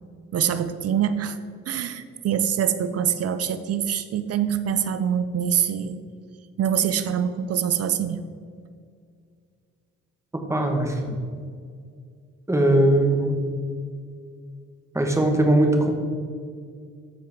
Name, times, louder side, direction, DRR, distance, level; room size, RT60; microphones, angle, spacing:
voice 1, 0.3-1.4 1.7-6.0 6.6-8.2, right 8 dB, 55° right, 11 dB, 0.5 m, -24 dB
voice 2, 10.5-11.2 12.5-13.4 14.9-15.9, right 1 dB, 10° right, 2 dB, 1.3 m, -20 dB
13.0 x 4.5 x 3.6 m, 2.2 s
cardioid pair, 90°, 30 cm